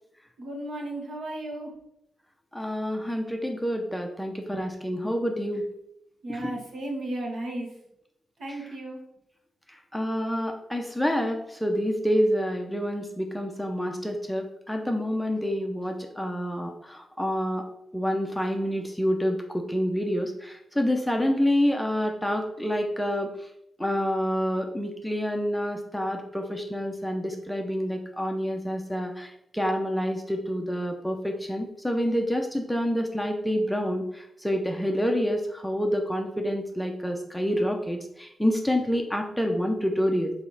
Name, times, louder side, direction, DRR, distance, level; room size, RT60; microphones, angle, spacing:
voice 1, 0.4-1.7 6.2-7.7 8.4-9.0, right 1 dB, 60° right, 0 dB, 1.6 m, -34 dB
voice 2, 2.5-5.6 6.3-6.6 8.5-8.7 9.9-17.6 17.9-23.3 23.8-40.3, equal, ahead, 3 dB, 0.6 m, -28 dB
5.0 x 4.1 x 5.7 m, 0.77 s
wide cardioid pair, 155°, 0 cm